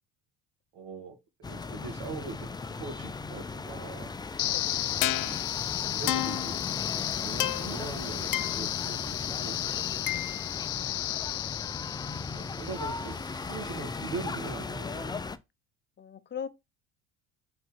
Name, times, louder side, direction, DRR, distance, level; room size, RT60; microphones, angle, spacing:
voice 1, 0.7-4.1 5.0-5.4 5.9-6.6 6.8-9.8 12.2-15.2, right 5 dB, 75° right, 2.0 m, -42 dB
sound 1, 1.4-15.4, left 4 dB, 10° left, 0.4 m, -37 dB
sound 2, 4.4-13.4, left 15 dB, 60° left, 0.6 m, -32 dB
voice 2, 4.4-5.0 16.0-16.5, left 7 dB, 30° left, 0.8 m, -42 dB
4.7 x 4.0 x 5.0 m
supercardioid pair, 100°, 36 cm